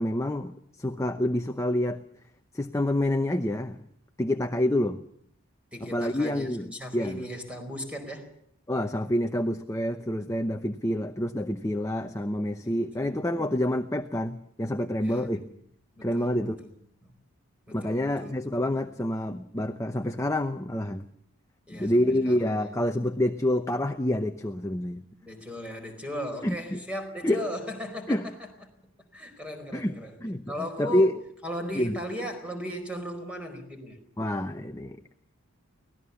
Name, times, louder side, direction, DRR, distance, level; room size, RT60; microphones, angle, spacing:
voice 1, 0.0-2.0 2.5-3.8 4.2-5.0 5.9-7.2 8.7-15.4 16.0-16.6 17.7-21.1 21.7-25.1 26.4-26.8 27.2-27.4 28.1-28.3 29.7-30.0 30.2-31.1 31.7-32.0 34.2-35.0, left 1 dB, 15° left, 6 dB, 0.8 m, -27 dB
voice 2, 5.7-8.3 12.6-13.1 15.0-15.5 15.9-16.7 17.0-17.1 17.7-18.4 21.7-22.7 25.2-28.3 29.1-30.2 30.5-31.1 31.4-34.0, equal, 5° right, 5 dB, 4.6 m, -37 dB
24.5 x 18.5 x 7.1 m, 0.66 s
head